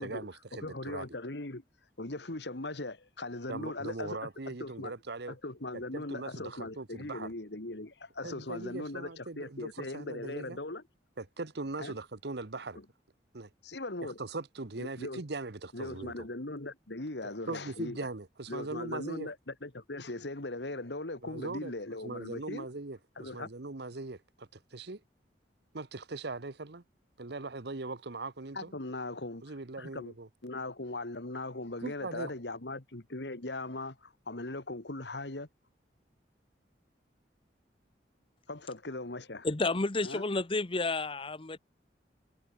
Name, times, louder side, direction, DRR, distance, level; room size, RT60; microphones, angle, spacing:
voice 1, 0.0-1.1 3.5-5.3 5.7-7.3 8.2-10.6 11.2-12.8 13.3-13.5 14.0-16.3 17.5-19.3 21.2-21.7 22.0-25.0 25.7-26.8 27.2-28.7 29.4-30.3 31.8-32.3, right 3 dB, 65° right, 1.2 m, -40 dB
voice 2, 0.6-1.6 2.0-4.2 4.5-4.9 5.3-10.8 11.8-12.0 13.6-14.2 14.8-15.2 15.7-18.0 18.5-22.7 23.2-23.5 28.5-29.4 29.8-30.1 30.4-35.5 38.5-39.5 40.0-40.2, left 2 dB, 70° left, 2.1 m, -39 dB
voice 3, 39.4-41.6, left 3 dB, 30° left, 1.0 m, -31 dB
head